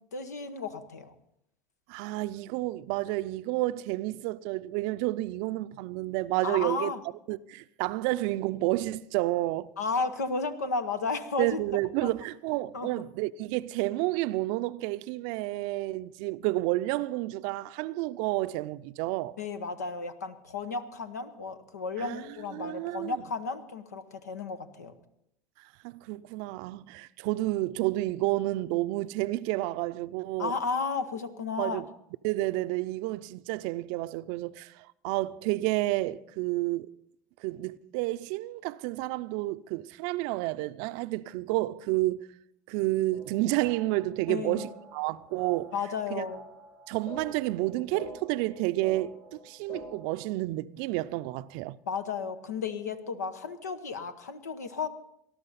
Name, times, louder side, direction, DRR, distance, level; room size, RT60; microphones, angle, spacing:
voice 1, 0.1-1.1 6.4-7.0 9.8-11.6 12.0-12.1 12.7-12.9 19.4-24.9 30.4-31.8 44.3-44.7 45.7-46.4 51.9-54.9, left 4 dB, 90° left, 1.0 m, -33 dB
voice 2, 1.9-6.9 7.3-9.7 11.4-19.4 22.0-23.2 25.6-30.6 31.6-31.9 32.2-36.9 37.4-42.3 42.7-45.7 46.1-46.3 46.9-51.8, right 18 dB, 65° right, 0.5 m, -30 dB
sound 1, 43.1-50.1, equal, 75° left, 6.2 m, -47 dB
19.5 x 12.0 x 4.1 m
hypercardioid pair, 80°, 9 cm